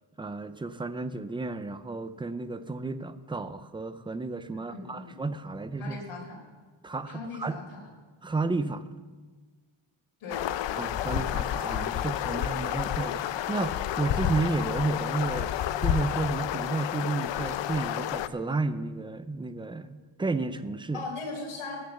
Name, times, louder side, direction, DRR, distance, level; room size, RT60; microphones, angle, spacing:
voice 1, 0.2-6.0 6.8-7.6 8.2-8.8 10.8-21.0, right 3 dB, 10° right, 12 dB, 0.3 m, -32 dB
voice 2, 4.5-5.1 5.8-6.4 7.1-7.9 10.2-10.8 20.9-21.8, left 3 dB, 80° left, 0 dB, 4.1 m, -39 dB
sound 1, 10.3-18.3, left 11 dB, 60° left, 0.6 m, -30 dB
18.0 x 6.5 x 7.0 m, 1.4 s
wide cardioid pair, 165°, 49 cm